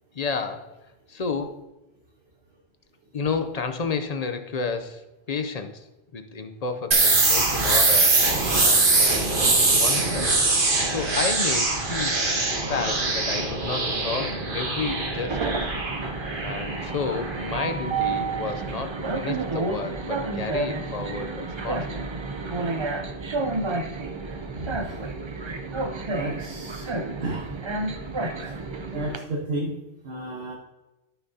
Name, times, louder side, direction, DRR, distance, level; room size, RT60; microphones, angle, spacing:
voice 1, 0.1-0.7 1.1-1.6 3.1-5.9 6.1-8.1 8.6-10.3 10.9-15.6 16.4-22.1, left 4 dB, 45° left, 8 dB, 0.6 m, -31 dB
sound 1, 6.9-18.5, right 3 dB, 55° right, 1.4 m, -23 dB
Train, 14.7-29.2, right 3 dB, 35° right, 0.5 m, -30 dB
voice 2, 24.5-24.9 26.1-26.8 27.2-27.4 28.4-28.5 28.9-29.8 30.0-30.5, right 1 dB, 70° right, -2 dB, 1.4 m, -32 dB
13.5 x 5.9 x 2.8 m, 0.99 s
omnidirectional pair, 1.1 m